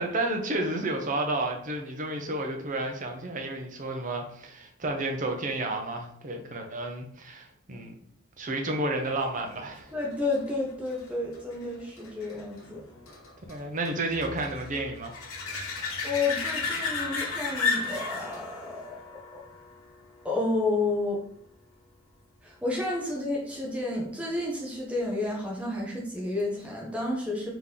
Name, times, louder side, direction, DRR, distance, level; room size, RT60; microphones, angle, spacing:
voice 1, 0.0-8.0 8.4-9.9 13.5-15.2, right 2 dB, 40° right, 3 dB, 0.6 m, -31 dB
sound 1, 9.5-20.8 26.4-26.5, left 4 dB, 90° left, 0.9 m, -35 dB
voice 2, 9.9-12.8 16.0-18.5 18.8-18.9 20.2-21.2 22.4-27.5, left 2 dB, 5° right, -3 dB, 0.8 m, -30 dB
3.7 x 2.9 x 3.7 m, 0.65 s
head